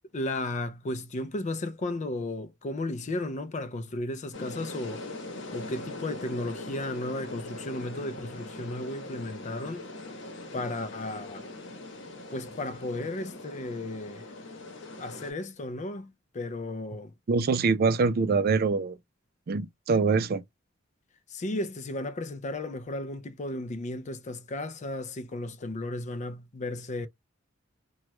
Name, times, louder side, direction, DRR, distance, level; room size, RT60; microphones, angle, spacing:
voice 1, 0.1-5.1 5.5-9.9 10.5-11.5 12.3-14.3 15.0-17.1 21.3-27.1, left 2 dB, 35° left, 0.4 m, -34 dB
sound 1, 4.3-15.3, left 2 dB, 65° left, 1.0 m, -41 dB
voice 2, 17.3-19.0 19.5-20.4, right 4 dB, 50° right, 0.4 m, -24 dB
3.0 x 2.3 x 3.1 m
head